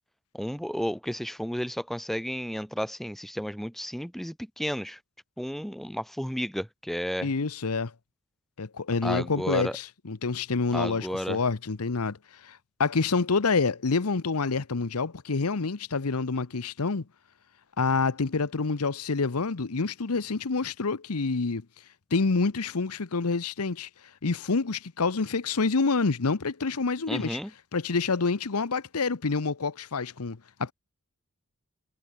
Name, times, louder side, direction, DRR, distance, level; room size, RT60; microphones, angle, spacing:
voice 1, 0.3-5.0 5.4-7.3 9.0-9.8 10.7-11.4 27.1-27.5, equal, ahead, 0.8 m, -32 dB
voice 2, 7.2-7.9 8.6-12.2 12.4-17.0 17.8-21.6 22.1-23.9 24.2-27.4 27.7-30.7, left 4 dB, 90° left, 0.9 m, -27 dB
head